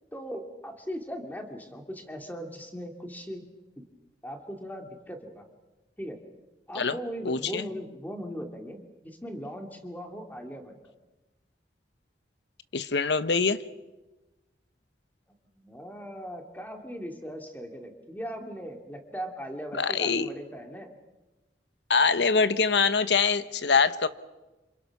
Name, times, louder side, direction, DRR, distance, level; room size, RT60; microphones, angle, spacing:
voice 1, 0.1-3.5 3.8-3.9 4.2-5.4 6.0-6.2 6.7-10.8 15.5-20.9, equal, 10° left, 4 dB, 2.6 m, -39 dB
voice 2, 7.2-7.6 12.7-13.6 19.7-20.3 21.9-24.1, left 5 dB, 85° left, 13 dB, 1.1 m, -24 dB
28.0 x 27.0 x 6.0 m, 1.1 s
head